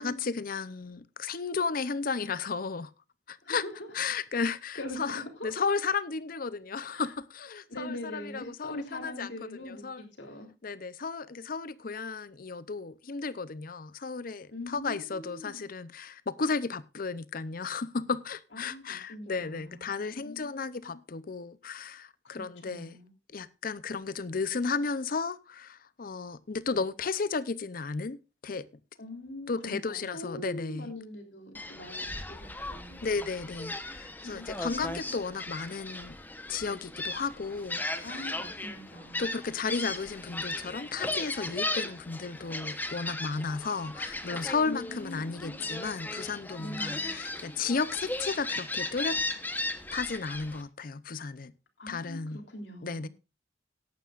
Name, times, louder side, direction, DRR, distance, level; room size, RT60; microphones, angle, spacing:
voice 1, 0.0-2.9 3.3-3.6 3.9-9.3 9.6-10.1 10.6-23.0 23.3-28.7 29.5-30.9 33.0-36.2 36.5-38.2 39.2-49.2 49.9-51.5 51.9-52.4 52.8-53.1, left 4 dB, 50° left, 0.6 m, -34 dB
voice 2, 3.4-3.9 4.8-5.6 6.9-7.1 7.7-10.5 14.5-15.6 18.5-19.9 20.1-21.0 22.2-23.1 29.0-33.1 34.3-35.2 38.0-39.3 44.6-45.6 46.6-47.1 51.8-53.1, left 1 dB, 75° left, 3.3 m, -43 dB
Gull seagull, 31.5-50.6, left 2 dB, 10° left, 0.9 m, -37 dB
17.5 x 11.5 x 2.5 m
head